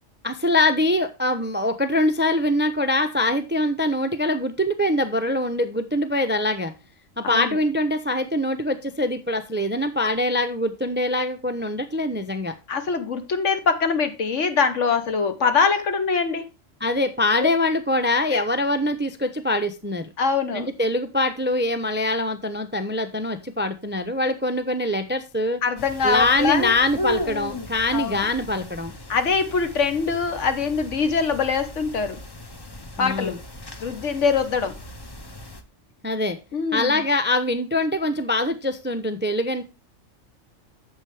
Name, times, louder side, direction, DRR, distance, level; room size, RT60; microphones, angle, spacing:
voice 1, 0.2-6.7 7.2-12.5 16.8-20.1 20.5-25.6 26.0-28.9 33.0-33.4 36.0-36.4 36.7-39.6, left 1 dB, 10° right, 0.5 m, -23 dB
voice 2, 7.2-7.6 12.7-16.5 18.3-18.4 20.2-20.7 25.6-26.8 27.9-28.2 29.1-32.2 33.0-33.4 33.8-34.8 36.5-37.0, left 5 dB, 65° left, 1.4 m, -23 dB
sound 1, 25.8-35.6, left 1 dB, 25° left, 0.7 m, -36 dB
8.8 x 7.2 x 3.4 m
omnidirectional pair, 1.4 m